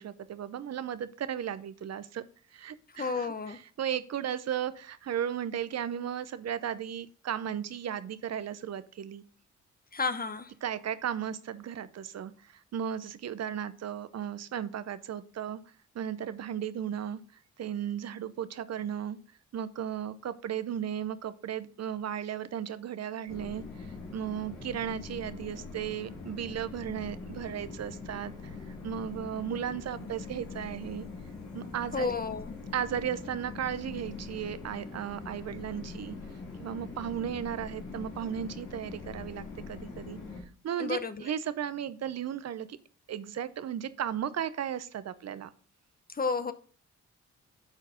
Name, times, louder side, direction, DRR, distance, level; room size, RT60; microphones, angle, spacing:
voice 1, 0.0-2.2 2.5-9.2 10.6-15.6 15.9-17.2 17.6-19.2 19.5-23.6 24.1-28.3 28.8-31.1 31.5-32.1 32.7-36.2 36.6-40.2 40.6-42.8 43.1-45.5, right 9 dB, 55° right, 0.7 m, -35 dB
voice 2, 3.0-3.6 9.9-10.5 31.9-32.5 40.8-41.1 46.2-46.5, left 4 dB, 30° left, 0.8 m, -31 dB
sound 1, 23.3-40.4, left 3 dB, 80° left, 2.5 m, -43 dB
8.2 x 4.6 x 5.0 m
supercardioid pair, 55°, 30 cm